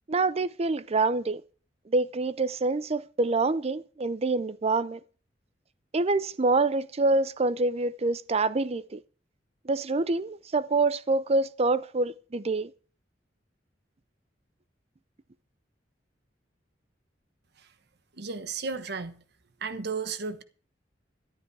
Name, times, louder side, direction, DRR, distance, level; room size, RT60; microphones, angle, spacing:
voice 1, 0.1-1.4 1.9-5.0 5.9-9.0 9.6-12.7, right 3 dB, 35° right, 0.5 m, -26 dB
voice 2, 18.2-19.2 19.6-20.4, right 4 dB, 65° right, 1.1 m, -34 dB
12.5 x 11.5 x 4.7 m
head